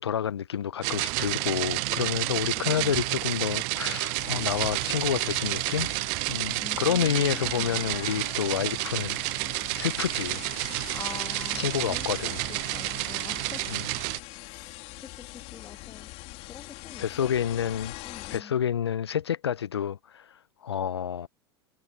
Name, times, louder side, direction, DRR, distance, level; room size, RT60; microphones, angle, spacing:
voice 1, 0.0-5.9 6.3-9.2 9.7-10.4 11.5-12.4 13.7-13.8 17.0-18.0 18.3-21.3, left 9 dB, 80° left, 0.8 m, -29 dB
sound 1, 0.8-14.2, right 38 dB, 50° right, 0.4 m, -30 dB
sound 2, 4.2-18.4, left 21 dB, 50° left, 3.9 m, -43 dB
voice 2, 6.6-7.9 10.9-12.0 12.5-13.7 14.4-16.1 16.5-17.3 18.0-18.6, left 7 dB, 25° left, 1.7 m, -45 dB
figure-of-eight pair, 85°, 14 cm